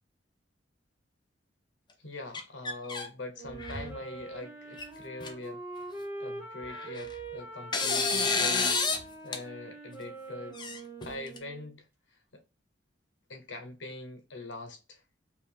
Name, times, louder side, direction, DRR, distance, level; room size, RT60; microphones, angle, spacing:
voice 1, 2.0-5.7 6.2-12.4 13.3-15.0, left 2 dB, 80° left, 1.0 m, -43 dB
sound 1, 2.3-3.1 3.5-4.0 4.8-4.9 5.2-5.3 6.6-7.2 7.7-9.0 9.3-9.4 10.5-11.4, left 4 dB, 25° left, 0.6 m, -30 dB
Wind instrument woodwind instrument, 3.3-11.7, right 2 dB, 10° right, 1.4 m, -42 dB
4.7 x 2.5 x 3.5 m
head